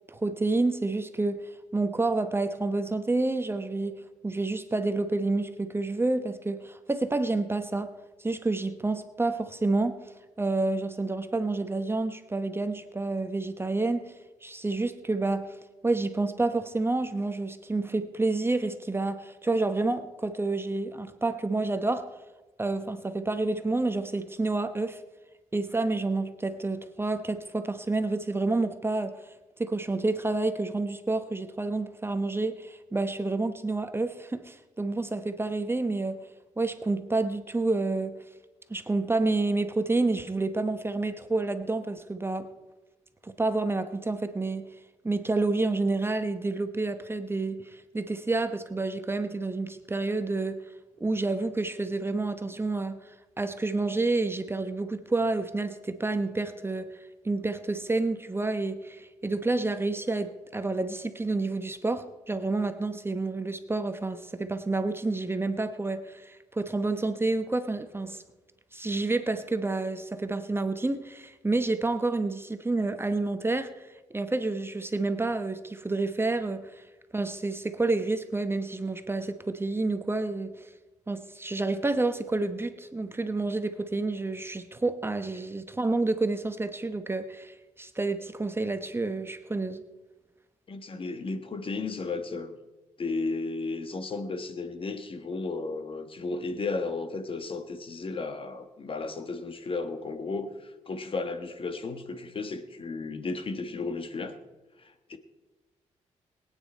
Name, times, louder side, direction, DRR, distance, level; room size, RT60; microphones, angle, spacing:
voice 1, 0.1-7.9 8.2-10.0 10.4-14.1 14.4-15.6 15.8-22.1 22.6-25.0 25.5-29.1 29.6-36.2 36.6-38.2 38.7-42.5 43.2-44.7 45.0-50.6 51.0-53.0 53.4-57.0 57.2-68.2 68.7-73.9 74.1-76.8 77.1-80.7 81.1-89.8, right 2 dB, 20° right, 0.9 m, -29 dB
voice 2, 90.7-92.6 93.0-104.3 104.8-105.2, left 3 dB, 45° left, 1.3 m, -34 dB
22.0 x 9.3 x 4.3 m
cardioid pair, 85°, 13 cm